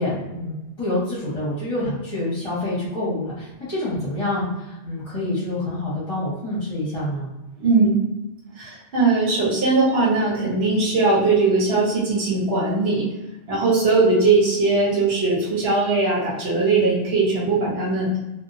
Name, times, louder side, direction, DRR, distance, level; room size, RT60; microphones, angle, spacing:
voice 1, 0.0-7.3, left 1 dB, 30° left, -9 dB, 1.2 m, -27 dB
voice 2, 7.6-7.9 8.6-13.0 13.5-18.1, right 3 dB, 70° right, -5 dB, 1.2 m, -20 dB
2.6 x 2.6 x 2.6 m, 1.0 s
omnidirectional pair, 1.1 m